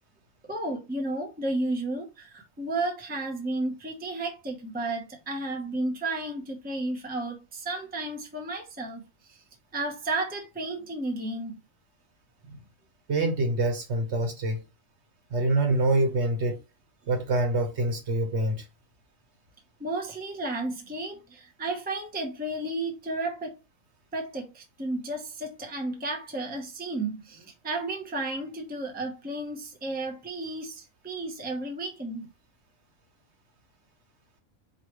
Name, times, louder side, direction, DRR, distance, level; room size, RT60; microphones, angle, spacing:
voice 1, 0.5-9.0 9.3-9.4 9.7-11.6 19.8-23.5 24.1-32.3, right 2 dB, 10° right, 0.7 m, -33 dB
voice 2, 13.1-14.6 15.3-16.6 17.1-18.6, right 2 dB, 50° right, 1.3 m, -25 dB
4.7 x 3.2 x 3.1 m
omnidirectional pair, 1.5 m